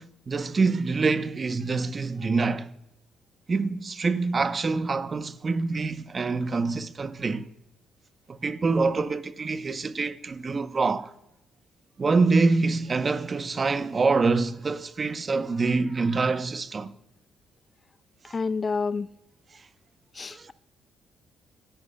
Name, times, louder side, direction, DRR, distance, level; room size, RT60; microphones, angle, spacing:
voice 1, 0.0-2.7 3.5-7.5 8.3-11.1 12.0-16.9 18.3-18.4 19.5-19.6 20.3-20.5, right 4 dB, 35° right, 0.8 m, -26 dB
voice 2, 18.3-19.1 20.1-20.5, left 4 dB, 35° left, 0.3 m, -28 dB
26.5 x 11.5 x 2.2 m
cardioid pair, 90°, 0 cm